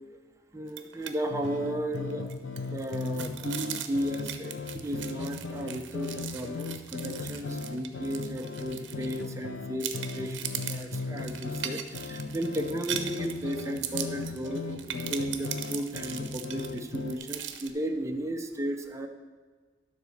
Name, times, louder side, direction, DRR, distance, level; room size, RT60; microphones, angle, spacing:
voice 1, 0.5-2.3 2.6-19.1, right 1 dB, 15° right, 3 dB, 0.8 m, -34 dB
sound 1, 0.7-1.1 1.4-1.6 1.9-9.4 9.8-17.7, right 10 dB, 70° right, 0.8 m, -39 dB
sound 2, 1.3-17.2, left 4 dB, 85° left, 0.7 m, -37 dB
12.0 x 4.1 x 6.6 m, 1.5 s
head